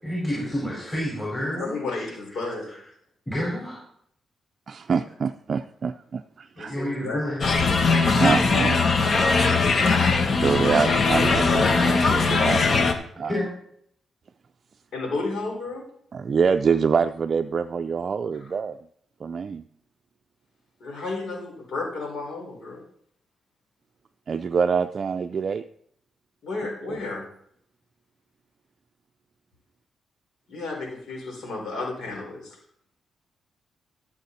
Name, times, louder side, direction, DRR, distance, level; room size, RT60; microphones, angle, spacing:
voice 1, 0.0-2.8 3.3-3.8 6.7-7.4 13.3-13.5, equal, 10° left, -5 dB, 4.8 m, -30 dB
voice 2, 1.5-2.7 6.6-7.3 14.9-15.8 20.8-22.8 26.4-27.2 30.5-32.5, left 3 dB, 75° left, -1 dB, 4.7 m, -32 dB
voice 3, 4.7-6.7 8.2-8.8 10.4-12.7 13.2-13.3 16.1-18.8 19.2-19.6 24.3-25.6 26.9-27.0, right 6 dB, 50° right, 8 dB, 0.4 m, -25 dB
sound 1, 7.4-12.9, left 4 dB, 50° left, 1.3 m, -20 dB
13.0 x 7.2 x 4.1 m, 0.68 s
cardioid pair, 85°, 0 cm